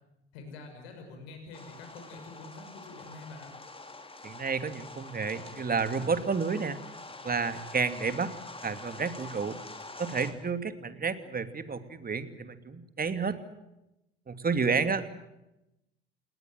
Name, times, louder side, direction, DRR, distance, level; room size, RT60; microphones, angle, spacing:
voice 1, 0.3-3.5 14.7-15.1, left 3 dB, 70° left, 5 dB, 6.1 m, -46 dB
sound 1, 1.5-10.3, left 2 dB, 15° left, 4.1 m, -46 dB
voice 2, 4.2-6.8 7.2-8.3 8.6-9.6 10.0-13.4 14.3-15.0, right 5 dB, 30° right, 10 dB, 2.7 m, -30 dB
29.0 x 20.0 x 7.9 m, 0.90 s
figure-of-eight pair, 55°, 32 cm